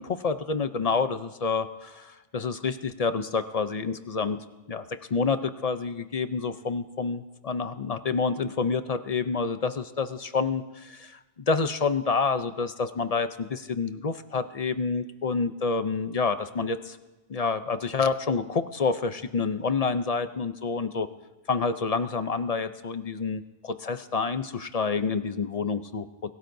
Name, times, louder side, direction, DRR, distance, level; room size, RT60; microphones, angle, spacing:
voice 1, 0.0-4.8 5.1-11.2 11.5-17.0 17.3-21.1 21.5-26.1, left 4 dB, 45° left, 10 dB, 0.6 m, -28 dB
25.0 x 17.0 x 2.7 m, 1.1 s
omnidirectional pair, 1.0 m